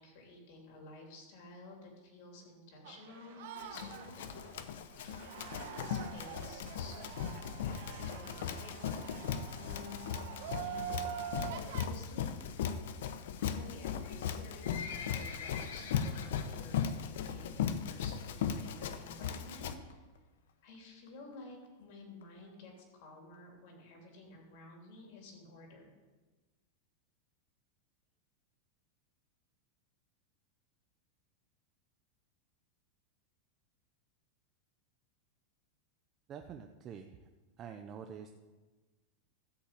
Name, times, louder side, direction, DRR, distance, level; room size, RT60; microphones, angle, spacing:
voice 1, 0.0-4.7 5.0-9.0 9.5-12.3 13.4-20.0 20.6-25.9, left 3 dB, 50° left, 1 dB, 3.3 m, -53 dB
sound 1, 2.8-11.9, right 10 dB, 60° right, 1.1 m, -45 dB
Run, 3.6-19.7, left 8 dB, 70° left, 0.9 m, -38 dB
Livestock farm animals working animals, 14.6-16.9 17.2-17.5 17.8-17.9 18.6-18.7 19.0-19.1 19.3-19.4 19.9-20.2 20.7-20.8 21.1-21.2 21.3-21.4 21.6-21.7 22.2-22.3 22.8-22.9 23.3-23.4, left 6 dB, 90° left, 1.3 m, -45 dB
voice 2, 36.3-37.2 37.6-38.3, right 7 dB, 25° right, 5 dB, 0.5 m, -46 dB
13.0 x 5.5 x 8.3 m, 1.3 s
supercardioid pair, 170°, 0 cm